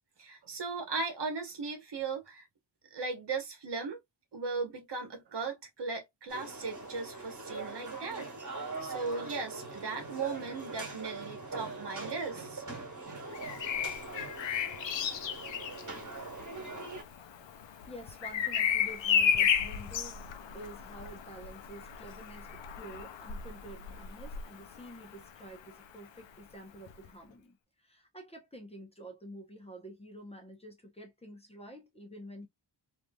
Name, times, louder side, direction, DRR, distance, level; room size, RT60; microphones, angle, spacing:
voice 1, 0.2-2.5 2.9-4.0 4.3-8.3 8.6-14.3, right 4 dB, 60° right, 1.1 m, -38 dB
sound 1, 6.3-17.0, right 3 dB, 40° right, 1.6 m, -42 dB
Bird vocalization bird call bird song, 13.3-25.1 26.9-27.1, left 7 dB, 75° left, 0.6 m, -33 dB
voice 2, 17.6-32.5, right 1 dB, 15° left, 0.8 m, -49 dB
3.2 x 2.7 x 2.3 m
wide cardioid pair, 105°, 45 cm